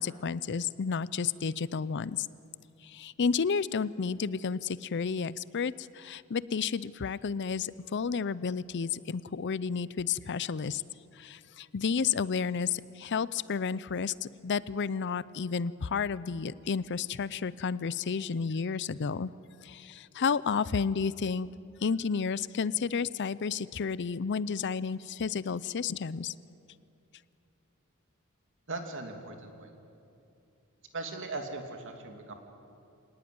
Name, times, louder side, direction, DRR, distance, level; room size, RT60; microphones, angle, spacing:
voice 1, 0.0-2.3 2.8-10.8 11.2-19.3 19.6-21.5 21.8-26.3, left 5 dB, 55° left, 19 dB, 0.5 m, -31 dB
voice 2, 28.7-29.7 30.9-32.3, right 3 dB, 65° right, 4 dB, 2.7 m, -39 dB
25.5 x 18.5 x 9.5 m, 2.6 s
head